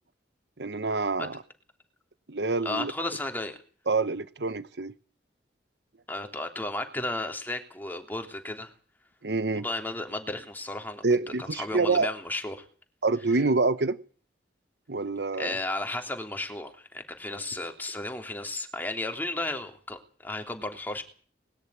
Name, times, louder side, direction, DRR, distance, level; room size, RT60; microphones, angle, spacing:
voice 1, 0.6-1.4 2.3-2.9 3.9-5.0 9.2-9.7 11.0-12.1 13.0-14.0 14.9-15.5, right 3 dB, 70° right, 1.0 m, -26 dB
voice 2, 2.6-3.6 6.1-8.7 9.5-11.0 11.4-12.6 15.4-21.0, left 2 dB, 10° left, 3.3 m, -34 dB
21.0 x 13.5 x 9.6 m
head